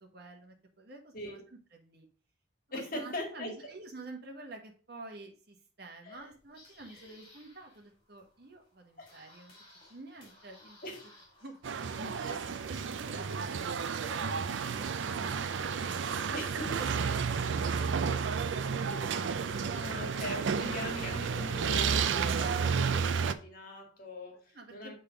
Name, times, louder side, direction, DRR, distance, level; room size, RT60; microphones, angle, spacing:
voice 1, 0.0-1.4 1.7-2.1 2.7-9.5 9.9-10.8 11.4-11.6 11.9-15.9 20.4-20.8 24.5-24.9, right 2 dB, 50° right, 3 dB, 1.4 m, -49 dB
voice 2, 2.7-3.6 6.0-6.3 6.9-7.2 9.0-9.1 10.8-11.0 14.1-14.3 16.3-16.8 19.7-24.9, left 1 dB, 45° left, 2 dB, 1.9 m, -41 dB
sound 1, 6.1-12.6, left 1 dB, 25° left, 2.8 m, -59 dB
sound 2, 11.6-23.3, right 6 dB, 70° right, 0.5 m, -31 dB
6.7 x 3.8 x 5.0 m, 0.40 s
head